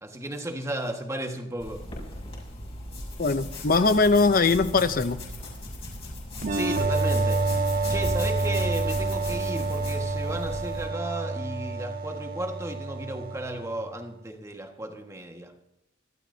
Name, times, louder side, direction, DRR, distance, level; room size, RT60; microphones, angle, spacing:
voice 1, 0.0-1.9 6.5-7.5 7.9-15.5, right 1 dB, 15° right, 4 dB, 1.6 m, -34 dB
sound 1, 1.6-10.9, left 1 dB, 30° left, 6.5 m, -38 dB
voice 2, 3.2-5.2, left 3 dB, 45° left, 10 dB, 0.6 m, -21 dB
sound 2, 6.4-13.9, right 3 dB, 50° right, 1.5 m, -28 dB
25.5 x 13.0 x 2.8 m, 0.85 s
head